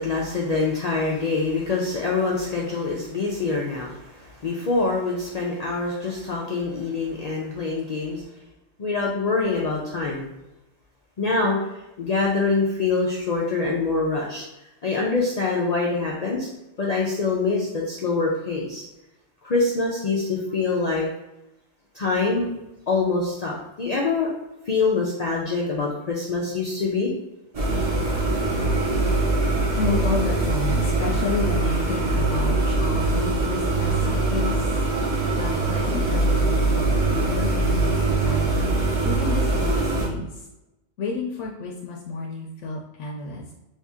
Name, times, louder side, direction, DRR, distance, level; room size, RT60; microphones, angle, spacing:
voice 1, 0.0-8.2 8.8-10.3 11.2-11.6 12.0-14.5 14.8-16.5 16.8-18.8 19.4-21.1 21.9-22.5 22.9-24.3 24.7-27.1, left 3 dB, 60° left, -3 dB, 0.4 m, -25 dB
sound 1, 27.5-40.1, right 2 dB, 40° right, 0.7 m, -22 dB
voice 2, 29.8-34.7 35.3-38.7 39.0-40.4 41.0-43.5, left 3 dB, 80° left, -1 dB, 0.9 m, -31 dB
2.7 x 2.7 x 3.5 m, 0.95 s
omnidirectional pair, 1.2 m